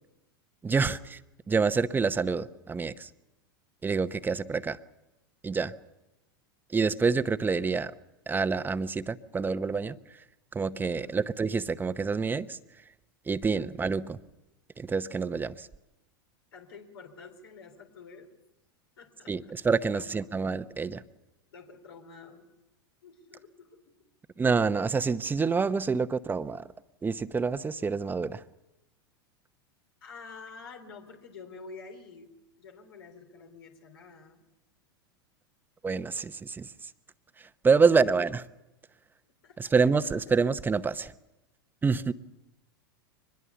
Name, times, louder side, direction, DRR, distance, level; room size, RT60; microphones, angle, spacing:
voice 1, 0.6-1.0 1.5-3.1 3.8-4.8 5.4-5.7 6.7-7.9 8.3-10.0 10.5-12.6 13.3-14.2 14.8-15.7 19.3-21.0 24.4-26.6 27.0-28.4 35.8-36.7 37.4-38.4 39.6-41.1 41.8-42.1, right 5 dB, 15° right, 12 dB, 0.9 m, -27 dB
voice 2, 16.5-18.3 19.0-19.6 19.9-20.1 21.5-22.5 23.0-24.0 30.0-34.4 37.8-38.2 39.4-39.8, left 5 dB, 80° left, 4 dB, 3.5 m, -48 dB
23.5 x 21.0 x 7.0 m, 0.96 s
hypercardioid pair, 100°, 13 cm